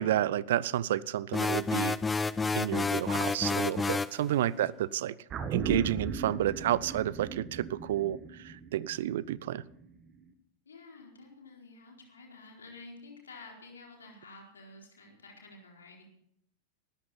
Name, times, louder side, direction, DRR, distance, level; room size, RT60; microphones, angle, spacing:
voice 1, 0.0-2.0 2.5-5.1 5.5-9.6, right 12 dB, 55° right, 22 dB, 0.6 m, -30 dB
sound 1, 1.3-4.2, left 4 dB, 15° left, 0.5 m, -29 dB
voice 2, 4.5-4.9 10.7-16.0, left 3 dB, 70° left, 0 dB, 4.3 m, -51 dB
sound 2, 5.3-9.9 10.2-10.3, right 5 dB, 30° right, 1.8 m, -37 dB
19.5 x 13.5 x 4.3 m, 0.72 s
figure-of-eight pair, 90°, 0 cm